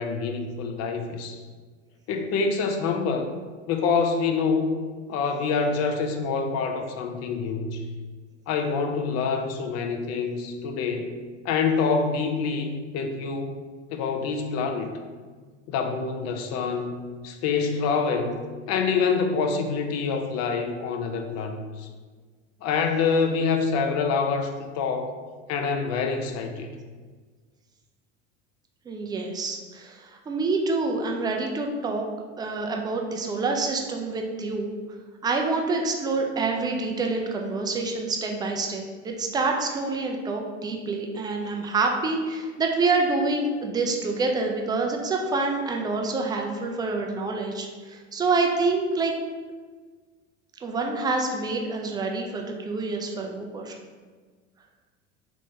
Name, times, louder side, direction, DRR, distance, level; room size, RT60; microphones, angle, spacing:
voice 1, 0.0-1.4 2.1-3.3 3.7-4.7 5.1-7.9 8.5-11.2 11.4-13.6 13.9-14.9 15.7-17.0 17.2-18.4 18.7-21.9 22.6-25.2 25.5-26.7, left 5 dB, 45° left, 5 dB, 0.5 m, -26 dB
voice 2, 28.9-32.0 32.4-34.7 35.2-49.1 50.6-53.7, right 3 dB, 10° right, 2 dB, 0.3 m, -27 dB
3.6 x 3.0 x 2.6 m, 1.5 s
hypercardioid pair, 80°, 36 cm